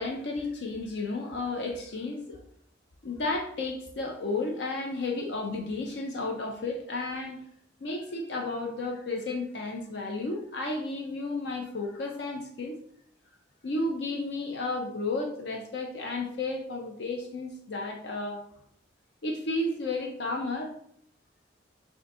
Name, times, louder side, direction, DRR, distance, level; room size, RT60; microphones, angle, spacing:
voice 1, 0.0-2.4 3.0-7.4 7.8-12.8 13.6-18.4 19.2-20.7, left 2 dB, 65° left, 2 dB, 0.5 m, -32 dB
6.2 x 2.6 x 2.4 m, 0.68 s
head